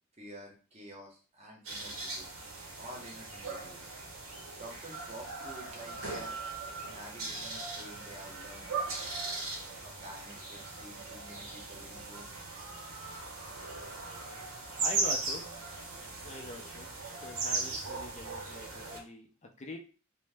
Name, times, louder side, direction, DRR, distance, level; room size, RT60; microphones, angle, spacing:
voice 1, 0.2-2.3 2.8-3.9 4.6-6.4 6.8-9.1 10.0-12.3, right 1 dB, 30° right, -1 dB, 0.8 m, -49 dB
sound 1, 1.6-19.0, right 3 dB, 80° right, 0.7 m, -38 dB
voice 2, 14.8-15.5 16.2-16.9 17.2-19.8, left 1 dB, 30° left, 3 dB, 0.4 m, -44 dB
2.6 x 2.0 x 3.3 m, 0.36 s
head